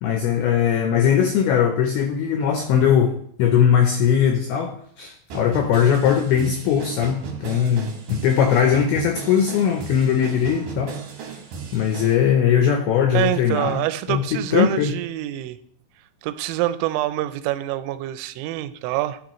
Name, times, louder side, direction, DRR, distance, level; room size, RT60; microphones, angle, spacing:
voice 1, 0.0-3.1 3.4-10.9 11.7-13.8 14.1-14.2 14.5-14.9, left 8 dB, 90° left, 4 dB, 2.2 m, -20 dB
sound 1, 5.3-12.2, right 6 dB, 65° right, 2.6 m, -36 dB
voice 2, 13.1-15.6 16.2-19.2, right 15 dB, 85° right, 11 dB, 2.8 m, -26 dB
13.0 x 4.9 x 3.0 m, 0.64 s
omnidirectional pair, 5.4 m